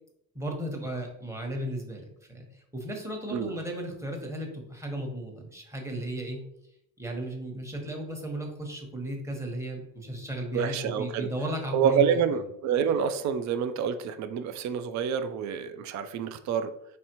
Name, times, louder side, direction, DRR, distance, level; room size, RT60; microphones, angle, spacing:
voice 1, 0.3-6.4 7.0-12.2, right 1 dB, 5° right, 1 dB, 1.0 m, -35 dB
voice 2, 10.5-11.3 11.7-16.7, right 7 dB, 45° right, 10 dB, 0.4 m, -27 dB
4.1 x 3.3 x 2.9 m, 0.80 s
supercardioid pair, 80°, 39 cm